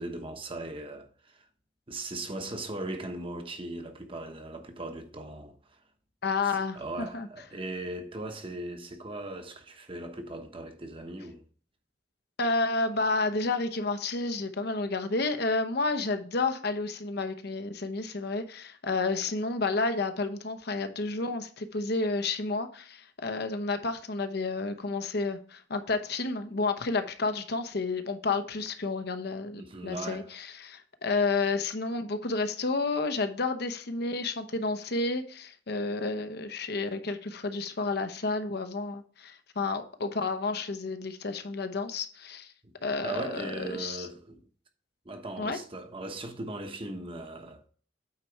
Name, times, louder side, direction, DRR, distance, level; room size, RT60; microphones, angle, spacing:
voice 1, 0.0-1.5 1.9-5.8 6.4-11.4 29.5-30.4 42.6-42.7 43.0-44.4 45.0-47.7, right 2 dB, 30° right, 1.0 m, -39 dB
voice 2, 6.2-7.3 12.4-42.5 42.8-44.1 45.4-45.6, left 3 dB, 60° left, 0.8 m, -31 dB
8.9 x 4.1 x 4.6 m
head